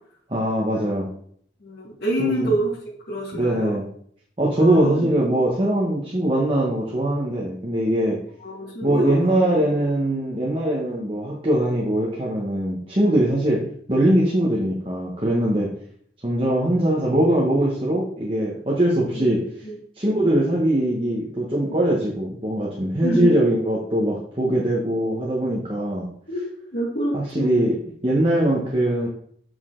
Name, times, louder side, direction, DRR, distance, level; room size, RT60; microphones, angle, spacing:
voice 1, 0.3-1.1 2.2-2.5 3.3-3.9 4.4-8.2 8.8-13.6 13.9-15.7 16.2-19.4 19.9-26.1 27.1-27.8 28.0-29.1, right 1 dB, 30° right, -3 dB, 1.3 m, -21 dB
voice 2, 1.6-2.7 3.1-3.8 4.6-5.1 8.4-9.3 19.2-19.4 19.6-19.7 20.2-20.3 23.0-23.3 26.3-26.4 26.7-27.7, right 1 dB, 60° left, -7 dB, 2.8 m, -27 dB
7.2 x 6.3 x 3.8 m, 0.63 s
head